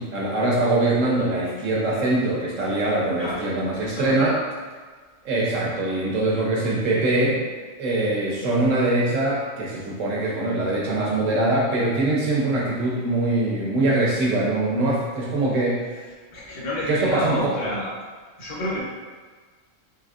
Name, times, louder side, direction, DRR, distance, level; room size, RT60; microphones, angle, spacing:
voice 1, 0.0-4.4 5.2-7.4 7.8-16.1 16.9-17.5, right 2 dB, 90° right, -4 dB, 1.3 m, -23 dB
voice 2, 3.7-4.2 16.3-18.0 18.4-18.8, left 1 dB, 50° left, -4 dB, 1.1 m, -29 dB
4.6 x 2.9 x 2.4 m, 1.5 s
omnidirectional pair, 1.3 m